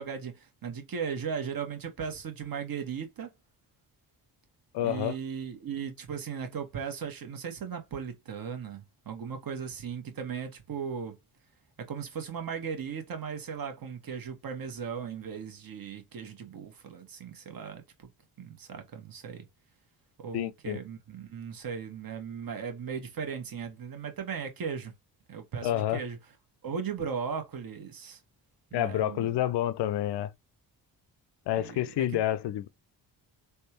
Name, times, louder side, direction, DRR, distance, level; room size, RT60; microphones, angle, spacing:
voice 1, 0.0-3.3 4.8-11.1 11.8-18.1 18.4-19.5 20.2-24.9 25.3-26.2 26.6-28.2 28.7-29.4 31.5-32.2, right 6 dB, 45° right, 1.2 m, -37 dB
voice 2, 4.7-5.2 20.3-20.8 25.6-26.0 28.7-30.3 31.5-32.7, left 12 dB, 55° left, 0.5 m, -29 dB
3.4 x 2.2 x 2.9 m
hypercardioid pair, 45°, 49 cm